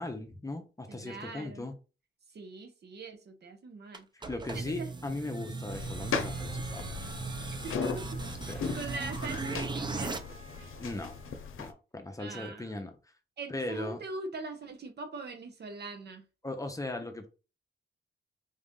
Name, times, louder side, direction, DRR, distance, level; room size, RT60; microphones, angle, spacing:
voice 1, 0.0-1.8 4.1-7.0 8.5-8.8 10.8-11.1 11.6-13.0 13.5-14.0 16.4-17.3, left 2 dB, 15° left, 0.7 m, -38 dB
voice 2, 0.9-1.7 2.3-4.1 4.5-4.9 5.5-5.7 7.6-7.7 8.3-10.2 12.2-12.7 13.4-16.2, right 3 dB, 55° right, 0.9 m, -42 dB
sound 1, 3.9-10.2, right 3 dB, 20° right, 0.5 m, -37 dB
Trumpet, 5.6-11.6, right 5 dB, 85° right, 1.4 m, -55 dB
sound 2, 5.7-11.7, left 6 dB, 80° left, 0.7 m, -38 dB
4.1 x 2.5 x 3.7 m
cardioid pair, 100°, 21 cm